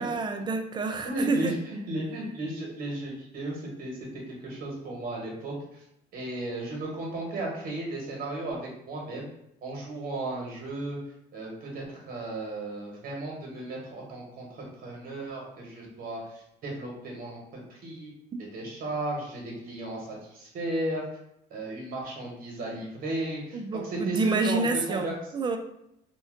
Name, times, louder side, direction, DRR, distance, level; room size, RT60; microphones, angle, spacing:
voice 1, 0.0-1.6 23.5-25.6, right 3 dB, 25° right, 6 dB, 0.4 m, -28 dB
voice 2, 1.0-5.8 6.1-9.3 9.6-11.0 11.3-18.1 18.4-21.0 21.5-25.1, right 1 dB, 60° right, -1 dB, 1.0 m, -35 dB
2.6 x 2.1 x 3.6 m, 0.78 s
cardioid pair, 110°, 17 cm